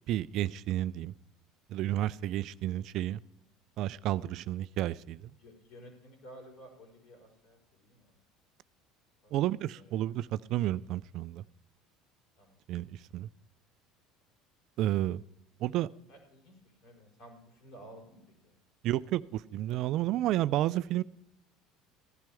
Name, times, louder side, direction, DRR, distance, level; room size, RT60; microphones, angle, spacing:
voice 1, 0.1-1.1 1.7-3.2 3.8-5.3 9.3-11.4 12.7-13.3 14.8-15.2 15.6-15.9 18.8-21.0, right 14 dB, 60° right, 18 dB, 0.3 m, -31 dB
voice 2, 1.9-2.4 5.4-8.1 9.2-9.9 12.4-12.6 16.1-18.5, equal, 65° left, -1 dB, 4.9 m, -54 dB
15.5 x 12.0 x 3.5 m, 0.78 s
hypercardioid pair, 75°, 0 cm